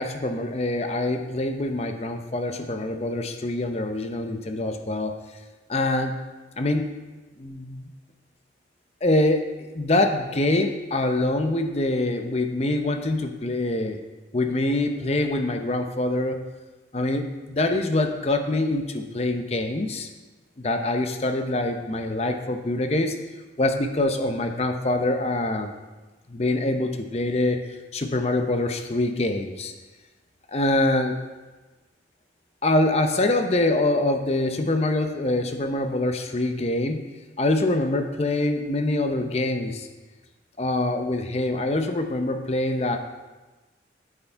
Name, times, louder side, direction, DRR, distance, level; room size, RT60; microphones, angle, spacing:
voice 1, 0.0-5.1 5.7-6.1 6.6-6.9 7.4-7.9 9.0-9.5 9.7-14.0 14.3-16.4 16.9-20.1 20.6-23.2 23.6-25.7 26.3-27.6 27.9-29.7 30.5-31.2 32.6-37.0 37.4-39.9 40.6-43.0, left 2 dB, 35° left, 6 dB, 0.6 m, -24 dB
8.7 x 6.8 x 4.5 m, 1.2 s
head